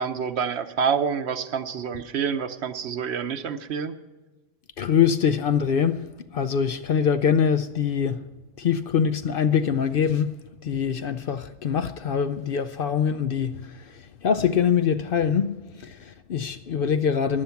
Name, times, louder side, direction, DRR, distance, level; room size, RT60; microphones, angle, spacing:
voice 1, 0.0-4.0, right 6 dB, 65° right, 1.0 m, -27 dB
voice 2, 4.8-8.3 8.6-17.4, left 7 dB, 60° left, 0.7 m, -24 dB
15.0 x 10.5 x 5.8 m
omnidirectional pair, 1.2 m